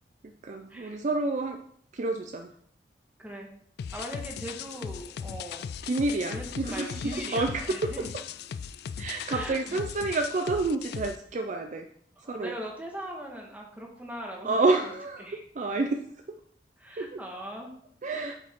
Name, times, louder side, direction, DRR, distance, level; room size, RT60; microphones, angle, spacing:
voice 1, 0.2-1.6 1.9-2.5 5.9-7.9 9.0-11.9 12.3-12.5 14.4-15.3 15.6-16.0 17.0-17.2 18.0-18.3, right 3 dB, 45° right, 5 dB, 0.4 m, -29 dB
voice 2, 3.2-3.5 3.9-5.7 6.3-8.1 9.3-9.8 12.2-14.9 15.2-15.4 16.8-17.7, equal, 10° right, 0 dB, 1.3 m, -40 dB
sound 1, 3.8-11.2, left 7 dB, 60° left, 0.3 m, -38 dB
7.8 x 5.1 x 3.6 m, 0.64 s
head